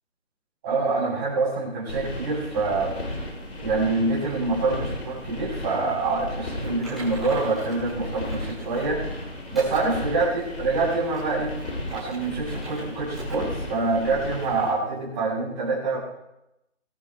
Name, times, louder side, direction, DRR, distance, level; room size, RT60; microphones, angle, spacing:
voice 1, 0.6-2.9 3.6-9.0 9.5-11.5 11.9-16.0, right 3 dB, 15° right, -8 dB, 6.9 m, -26 dB
sound 1, 1.9-14.7, left 1 dB, 55° left, 6.2 m, -35 dB
Typing, 6.6-9.0 9.5-9.9 10.4-10.5 11.0-12.8 13.1-13.4 13.7-13.8 14.4-14.5, right 2 dB, ahead, 2.4 m, -42 dB
24.0 x 11.0 x 3.3 m, 0.87 s
figure-of-eight pair, 175°, 38 cm